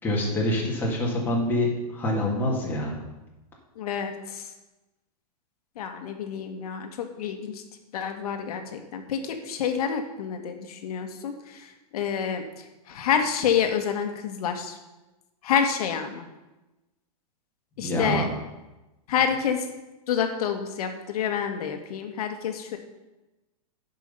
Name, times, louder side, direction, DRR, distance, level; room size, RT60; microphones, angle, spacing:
voice 1, 0.0-3.0 17.8-18.2, left 1 dB, 10° left, -4 dB, 2.2 m, -26 dB
voice 2, 3.8-4.5 5.8-7.6 7.9-12.4 12.9-14.8 15.4-16.2 17.8-18.3 19.1-19.6 20.1-22.8, left 7 dB, 70° left, 6 dB, 1.5 m, -28 dB
10.5 x 5.5 x 5.6 m, 1.0 s
hypercardioid pair, 145°, 20 cm